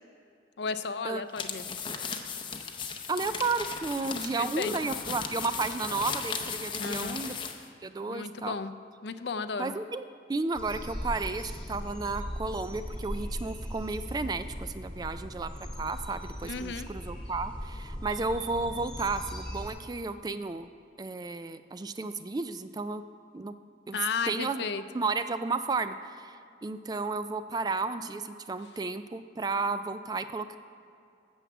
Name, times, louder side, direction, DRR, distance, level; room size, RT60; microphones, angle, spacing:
voice 1, 0.6-1.8 4.4-4.7 6.8-7.2 8.0-8.7 9.0-9.7 16.4-16.9 23.9-24.8, left 5 dB, 75° left, 11 dB, 0.5 m, -34 dB
sound 1, 1.3-7.7, left 6 dB, 25° left, 0.6 m, -36 dB
voice 2, 3.1-7.3 7.8-8.5 9.6-10.0 10.3-20.7 21.0-23.0 23.3-23.5 23.9-24.0 24.3-24.6 24.9-30.6, right 3 dB, 20° right, 11 dB, 0.3 m, -33 dB
sound 2, 10.5-19.7, equal, 5° left, 1.2 m, -39 dB
9.4 x 7.2 x 7.0 m, 2.4 s
head